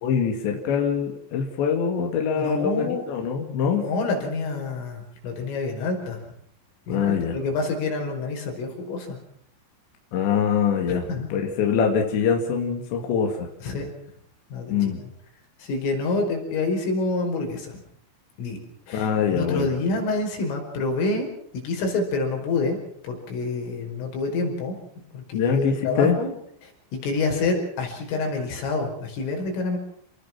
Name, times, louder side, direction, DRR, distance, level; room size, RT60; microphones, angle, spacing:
voice 1, 0.0-3.9 6.9-7.4 10.1-13.5 14.7-15.0 18.9-19.7 25.3-26.2, left 7 dB, 65° left, 2 dB, 4.4 m, -24 dB
voice 2, 2.3-3.0 3.7-6.2 6.9-9.2 10.9-11.3 13.6-13.9 14.5-14.7 15.6-17.8 18.4-18.6 18.9-22.8 23.0-24.8 25.1-26.3 26.9-29.8, left 3 dB, 85° left, 2 dB, 7.7 m, -27 dB
28.5 x 20.0 x 6.1 m, 0.64 s
omnidirectional pair, 5.6 m